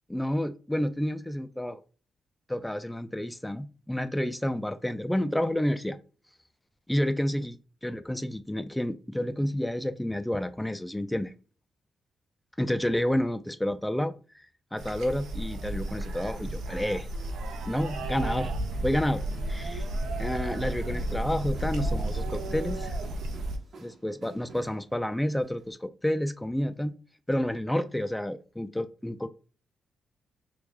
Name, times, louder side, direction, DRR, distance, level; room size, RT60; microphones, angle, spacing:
voice 1, 0.1-1.8 2.5-6.0 6.9-7.6 7.8-11.3 12.6-14.4 14.7-17.1 17.6-18.5 18.8-19.2 19.5-19.8 20.2-22.9 23.8-26.9 27.3-29.3, left 1 dB, 10° left, 0.4 m, -30 dB
sound 1, 14.8-23.6, right 1 dB, 85° right, 0.6 m, -33 dB
sound 2, 15.7-21.4, left 3 dB, 45° left, 0.9 m, -53 dB
sound 3, 20.5-25.7, right 3 dB, 60° right, 0.9 m, -48 dB
3.2 x 2.5 x 3.6 m
cardioid pair, 75°, 0 cm